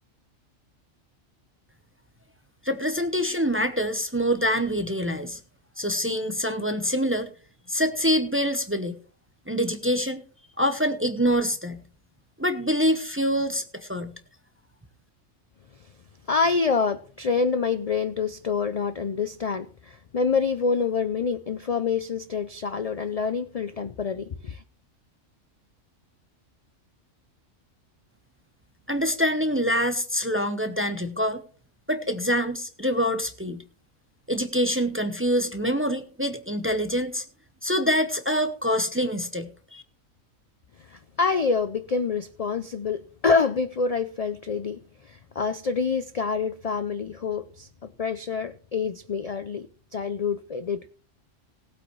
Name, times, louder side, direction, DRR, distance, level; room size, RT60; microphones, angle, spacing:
voice 1, 2.6-5.4 5.8-7.3 7.7-9.0 9.5-10.2 10.6-11.8 12.4-14.1 28.9-31.4 31.9-33.6 34.3-37.2 37.6-39.8, equal, 15° right, 0.6 m, -25 dB
voice 2, 16.3-24.6 40.9-47.7 48.0-49.7 49.9-50.9, left 5 dB, 55° left, 0.4 m, -27 dB
18.5 x 8.4 x 3.1 m
omnidirectional pair, 1.4 m